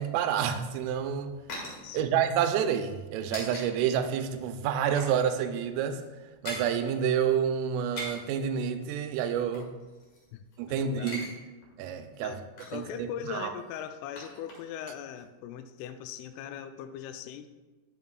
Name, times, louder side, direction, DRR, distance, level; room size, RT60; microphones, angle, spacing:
voice 1, 0.0-1.4 1.9-6.0 6.4-9.7 10.6-11.3 11.8-12.4 12.7-13.5, right 8 dB, 90° right, 8 dB, 3.2 m, -29 dB
sound 1, 0.7-3.7 4.0-4.1 4.5-5.2 5.5-5.6 5.9-6.7 7.7-8.4 9.1-10.6 10.9-11.3 11.6-11.7 12.1-12.9 13.6-14.9 15.1-15.2, left 1 dB, 50° left, 2.3 m, -42 dB
voice 2, 1.8-2.1 10.3-11.3 12.2-17.5, left 9 dB, 85° left, 9 dB, 3.0 m, -40 dB
10.5 x 8.8 x 2.3 m, 1.2 s
omnidirectional pair, 5.7 m